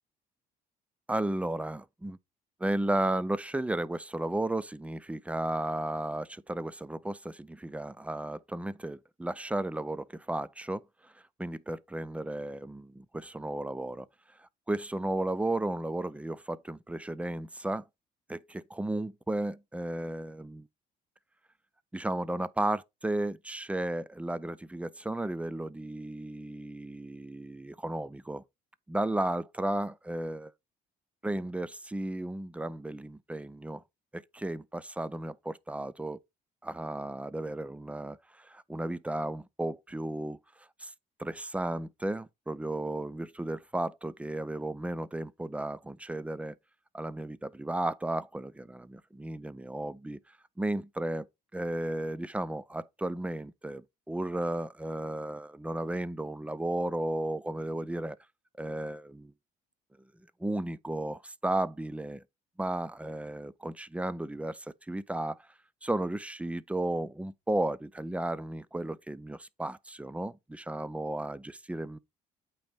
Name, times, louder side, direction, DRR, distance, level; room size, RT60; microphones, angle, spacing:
voice 1, 1.1-2.2 2.6-11.1 11.4-14.1 14.4-17.8 18.3-20.7 21.9-28.4 28.9-30.5 31.2-33.8 34.1-36.2 36.6-40.9 41.2-46.6 46.9-50.2 50.6-51.3 51.5-58.2 58.6-59.3 60.4-62.2 62.6-65.5 65.8-72.0, right 1 dB, 10° right, 0.4 m, -34 dB
8.5 x 3.0 x 5.1 m
cardioid pair, 110°, 17 cm